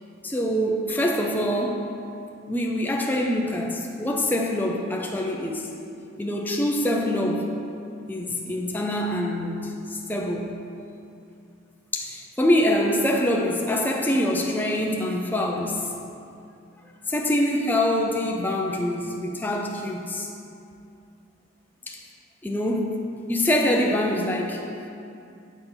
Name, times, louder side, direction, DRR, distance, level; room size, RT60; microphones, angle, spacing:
voice 1, 0.2-1.9 2.5-5.7 6.2-7.5 8.1-10.5 11.9-15.9 17.1-20.3 21.9-22.0 22.4-23.0 23.3-24.6, left 1 dB, 10° left, 0 dB, 0.4 m, -25 dB
7.8 x 4.4 x 3.8 m, 2.6 s
head